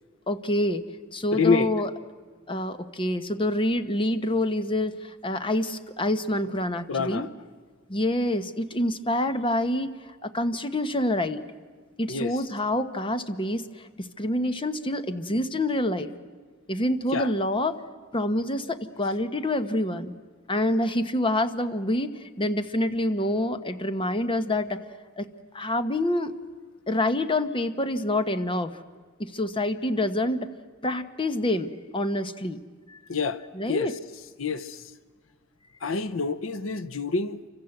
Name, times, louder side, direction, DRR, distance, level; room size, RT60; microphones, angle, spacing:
voice 1, 0.3-0.8 1.1-1.9 2.5-7.3 7.9-9.9 10.2-11.4 12.0-16.1 16.7-17.8 18.1-20.1 20.5-24.8 25.2-25.3 25.5-26.3 26.9-28.8 29.2-30.5 30.8-32.6 32.9-33.0 33.5-34.0, left 1 dB, 25° left, 1.1 m, -27 dB
voice 2, 1.3-1.7 6.9-7.3 12.1-12.4 17.1-17.3 33.1-33.4 33.7-33.9 34.4-34.8 35.8-37.4, left 4 dB, 75° left, 0.8 m, -27 dB
28.5 x 25.5 x 7.9 m
head